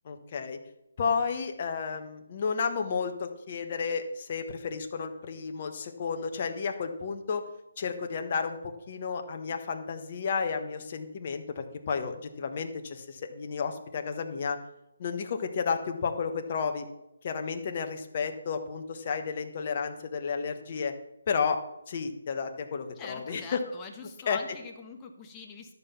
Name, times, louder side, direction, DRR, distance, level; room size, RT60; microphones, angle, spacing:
voice 1, 0.0-0.6 1.0-7.4 7.8-8.6 8.9-14.6 15.0-16.9 17.2-20.9 21.3-21.6 21.9-23.6 24.3-24.4, left 5 dB, 40° left, 5 dB, 1.2 m, -32 dB
voice 2, 22.9-25.7, left 5 dB, 15° left, 2 dB, 1.3 m, -44 dB
12.0 x 5.6 x 7.0 m, 0.89 s
figure-of-eight pair, 160°, 0 cm